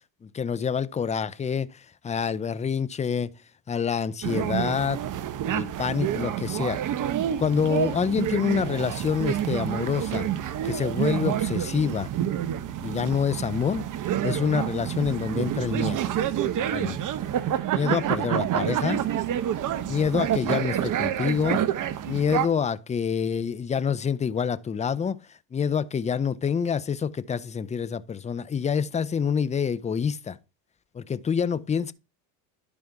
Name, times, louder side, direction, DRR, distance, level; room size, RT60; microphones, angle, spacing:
voice 1, 0.2-3.3 3.7-5.0 5.5-6.8 7.4-10.3 10.6-12.1 12.8-13.8 14.2-16.0 16.7-17.0 17.7-19.0 19.9-21.6 22.1-25.2 25.5-30.4 30.9-31.9, left 7 dB, 15° left, 0.5 m, -27 dB
sound 1, 4.2-22.5, right 11 dB, 40° right, 0.9 m, -28 dB
11.0 x 5.2 x 4.6 m
supercardioid pair, 95°, 48 cm